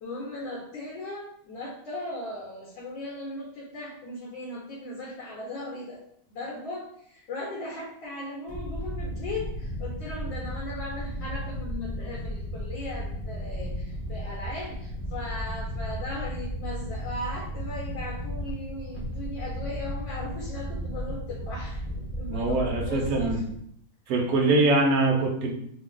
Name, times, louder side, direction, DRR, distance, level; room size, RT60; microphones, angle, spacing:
voice 1, 0.0-6.0 6.3-23.4 24.4-24.5, left 1 dB, 65° left, -4 dB, 1.6 m, -38 dB
sound 1, 8.5-23.5, equal, 10° left, 0.8 m, -34 dB
voice 2, 22.3-23.4 24.1-25.5, right 2 dB, 65° right, 0 dB, 0.9 m, -23 dB
3.4 x 2.3 x 3.7 m, 0.68 s
omnidirectional pair, 2.2 m